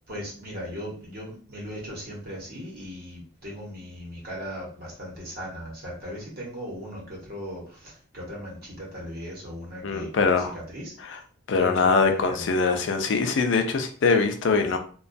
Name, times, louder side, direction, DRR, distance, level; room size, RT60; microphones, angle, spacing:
voice 1, 0.1-11.2 11.6-12.5, equal, 50° right, -4 dB, 0.8 m, -38 dB
voice 2, 9.8-10.6 11.0-11.2 11.5-14.8, left 4 dB, 60° left, 6 dB, 0.4 m, -23 dB
2.2 x 2.2 x 2.5 m, 0.44 s
head